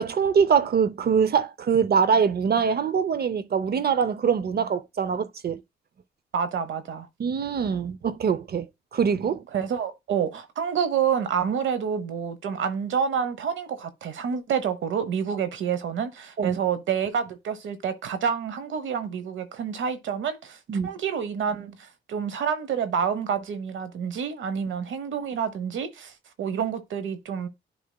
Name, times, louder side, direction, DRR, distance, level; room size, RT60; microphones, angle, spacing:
voice 1, 0.0-5.6 7.2-8.7 8.9-9.4 16.4-16.6 20.7-20.9, right 6 dB, 55° right, 0.6 m, -23 dB
voice 2, 6.3-7.1 9.5-27.5, right 7 dB, 85° right, 0.9 m, -28 dB
10.5 x 4.9 x 2.2 m
cardioid pair, 80°, 19 cm